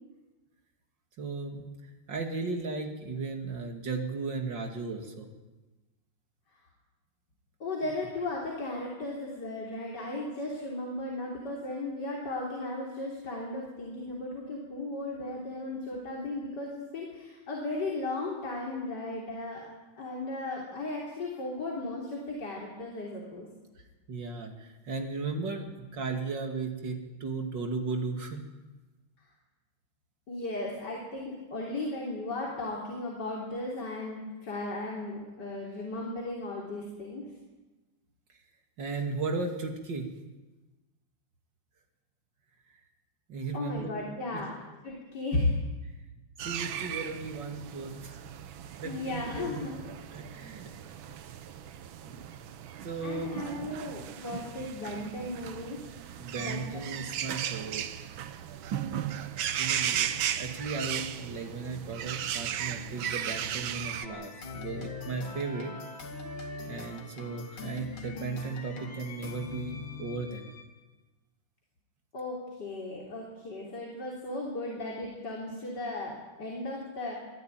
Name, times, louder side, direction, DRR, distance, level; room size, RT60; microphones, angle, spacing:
voice 1, 1.2-1.7 2.1-5.3 24.1-25.6 25.9-28.4 38.8-40.1 43.3-44.4 46.4-48.1 48.8-51.0 52.0-52.3 52.8-53.4 56.2-57.8 59.6-60.1 60.4-65.7 66.7-70.5, right 4 dB, 60° right, 4 dB, 3.0 m, -36 dB
voice 2, 7.6-19.7 20.0-23.5 30.3-37.3 43.5-45.5 48.8-49.8 53.0-55.8 56.4-57.0 72.1-77.1, left 2 dB, 55° left, -2 dB, 3.9 m, -36 dB
sound 1, 46.4-64.1, right 9 dB, 75° right, 1.7 m, -36 dB
sound 2, 63.8-70.7, left 4 dB, 70° left, 2.9 m, -42 dB
25.0 x 14.0 x 9.1 m, 1.2 s
omnidirectional pair, 2.2 m